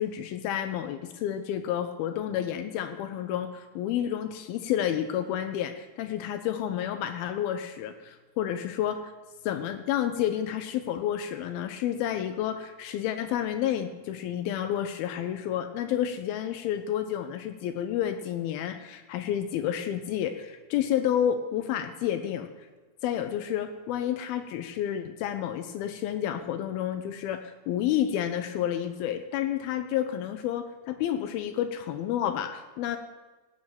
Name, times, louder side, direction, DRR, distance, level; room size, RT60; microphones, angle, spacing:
voice 1, 0.0-9.1 9.4-22.7 23.0-33.0, left 10 dB, 80° left, 8 dB, 2.2 m, -30 dB
17.0 x 6.2 x 8.8 m, 1.2 s
omnidirectional pair, 5.1 m